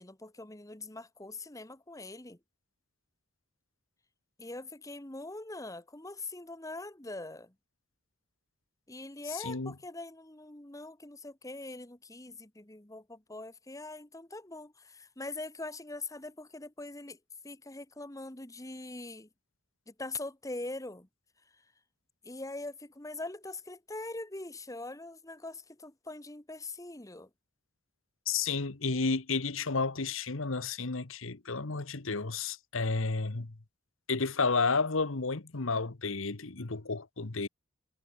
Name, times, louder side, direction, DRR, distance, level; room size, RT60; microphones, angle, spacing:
voice 1, 0.0-2.4 4.4-7.5 8.9-17.2 17.4-19.3 19.9-21.1 22.2-27.3, left 2 dB, 15° left, 1.5 m, -42 dB
voice 2, 28.3-33.5 34.1-37.5, left 4 dB, 70° left, 1.3 m, -31 dB
head